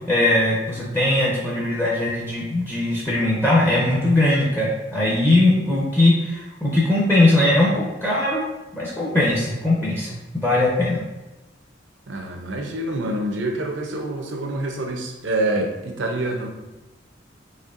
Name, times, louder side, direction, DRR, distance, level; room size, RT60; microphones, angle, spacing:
voice 1, 0.1-8.4 8.7-11.0, left 1 dB, 10° left, -5 dB, 0.6 m, -20 dB
voice 2, 12.1-16.5, right 1 dB, 75° right, 2 dB, 0.6 m, -26 dB
4.2 x 2.9 x 2.5 m, 1.1 s
head